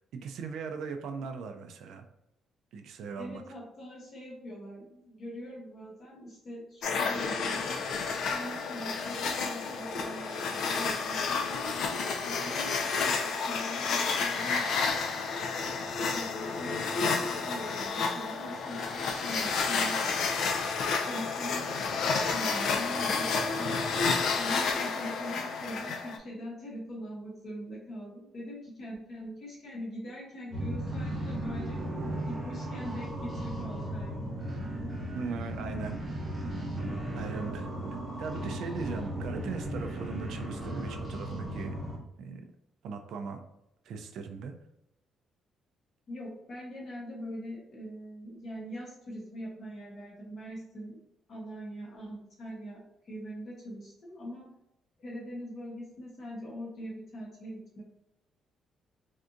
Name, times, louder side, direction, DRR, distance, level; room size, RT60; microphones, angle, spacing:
voice 1, 0.0-2.1 2.7-3.4 35.1-36.0 37.1-37.7 38.2-41.8 42.2-42.4 42.8-43.4 43.9-44.5, right 5 dB, 70° right, 5 dB, 0.4 m, -38 dB
voice 2, 3.2-7.9 8.3-15.3 16.0-20.1 21.1-21.8 22.3-31.8 32.3-34.3 46.1-51.0 51.3-54.5 55.0-57.8, equal, 45° left, -3 dB, 1.1 m, -42 dB
sound 1, 6.8-26.2, left 4 dB, 60° left, 0.4 m, -30 dB
sound 2, 30.5-42.0, right 1 dB, 15° right, 0.7 m, -36 dB
3.4 x 2.7 x 2.5 m, 0.83 s
cardioid pair, 160°, 0 cm